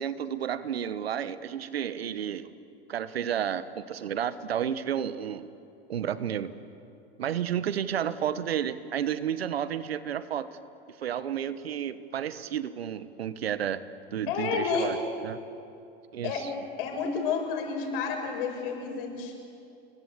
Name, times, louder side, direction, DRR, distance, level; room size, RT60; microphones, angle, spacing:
voice 1, 0.0-2.5 2.9-5.5 5.9-6.5 7.2-10.5 11.0-13.8 14.1-15.0 15.2-15.4 16.1-16.5, right 9 dB, 85° right, 14 dB, 1.3 m, -31 dB
voice 2, 14.3-15.0 16.2-16.5 16.8-19.3, left 5 dB, 65° left, 2 dB, 7.9 m, -30 dB
29.5 x 22.5 x 8.5 m, 2.6 s
hypercardioid pair, 90°, 30 cm